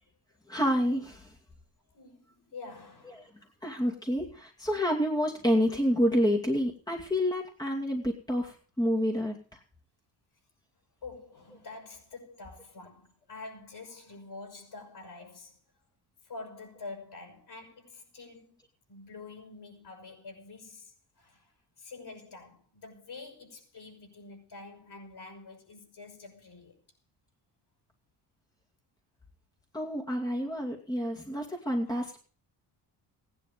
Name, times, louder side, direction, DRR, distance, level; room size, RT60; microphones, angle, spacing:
voice 1, 0.5-1.3 3.6-9.6 29.7-32.2, equal, 10° left, 2.6 m, -28 dB
voice 2, 1.9-3.5 11.0-15.6 16.2-18.5 18.9-26.8 31.9-32.1, left 3 dB, 50° left, 6.4 m, -47 dB
16.0 x 11.0 x 5.3 m
supercardioid pair, 70°, 50 cm